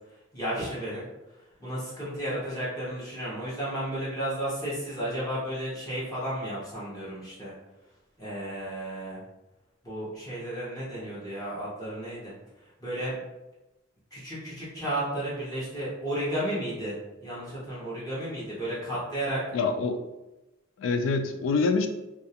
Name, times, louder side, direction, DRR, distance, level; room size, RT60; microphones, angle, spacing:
voice 1, 0.3-1.0 1.6-7.5 8.2-9.2 9.8-12.3 12.8-13.1 14.1-19.4, right 1 dB, 20° left, -8 dB, 0.7 m, -33 dB
voice 2, 19.5-20.0 20.8-21.9, left 4 dB, 80° left, 8 dB, 0.3 m, -25 dB
2.3 x 2.2 x 2.7 m, 0.98 s
head